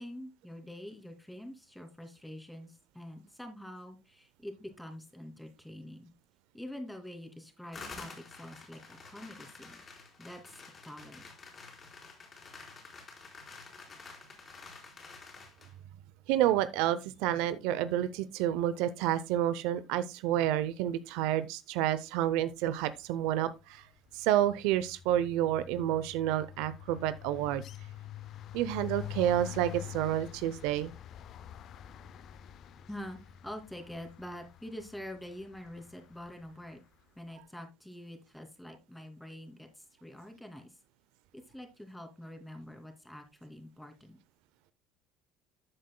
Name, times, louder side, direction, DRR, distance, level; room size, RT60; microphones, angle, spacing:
voice 1, 0.0-6.1 6.5-9.8 10.2-11.2 32.9-36.8 37.2-40.7 41.3-44.2, left 1 dB, 5° left, 2.6 m, -46 dB
sound 1, 7.7-15.7, left 4 dB, 35° left, 4.1 m, -49 dB
voice 2, 16.3-23.9 24.1-27.6 28.5-30.9, right 12 dB, 75° right, 0.6 m, -29 dB
sound 2, 23.0-23.3 23.6-36.7, left 12 dB, 55° left, 0.5 m, -47 dB
13.0 x 7.4 x 2.2 m
hypercardioid pair, 80°, 0 cm